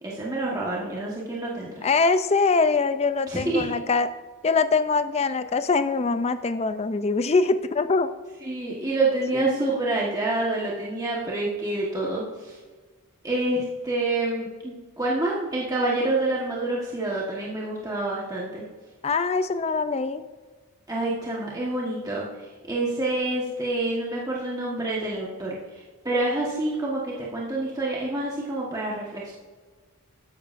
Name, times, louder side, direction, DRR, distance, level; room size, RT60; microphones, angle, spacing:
voice 1, 0.0-1.9 3.3-3.7 8.4-12.6 13.2-18.6 20.9-29.3, right 2 dB, 15° right, -5 dB, 1.3 m, -27 dB
voice 2, 1.8-4.1 4.4-8.1 9.3-9.6 19.0-20.2, left 4 dB, 30° left, 11 dB, 0.4 m, -23 dB
13.0 x 10.5 x 2.6 m, 1.4 s
head